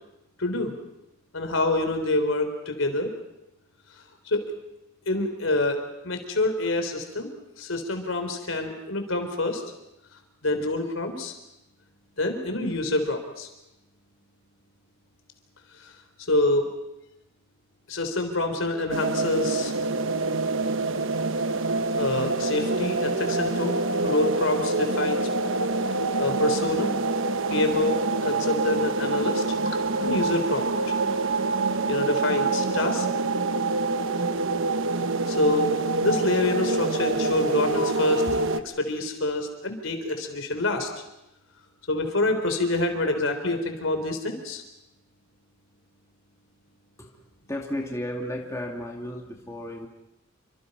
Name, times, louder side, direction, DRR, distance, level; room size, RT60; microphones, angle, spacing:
voice 1, 0.4-0.7 1.3-3.1 4.3-4.5 5.1-7.3 7.6-9.6 10.4-11.4 12.2-13.5 15.8-15.9 16.3-16.7 17.9-19.7 21.9-23.8 24.0-25.3 26.2-26.9 27.5-31.0 31.9-33.1 35.3-40.9 41.9-44.6, left 2 dB, 70° left, 6 dB, 3.9 m, -26 dB
sound 1, 18.9-38.6, right 3 dB, 70° right, 1.1 m, -26 dB
voice 2, 47.5-49.9, left 1 dB, 15° left, 0 dB, 2.5 m, -33 dB
28.5 x 25.5 x 5.5 m, 0.90 s
head